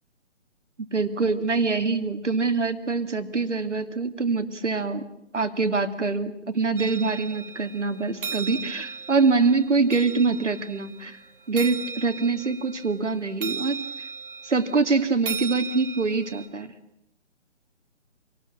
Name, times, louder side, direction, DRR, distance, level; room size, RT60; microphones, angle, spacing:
voice 1, 0.9-5.1 5.3-11.2 11.5-13.8 14.4-16.7, right 4 dB, 70° right, 9 dB, 2.6 m, -24 dB
sound 1, 6.8-16.5, right 5 dB, 45° right, 2.3 m, -37 dB
26.5 x 19.0 x 8.7 m, 0.82 s
figure-of-eight pair, 145°, 37 cm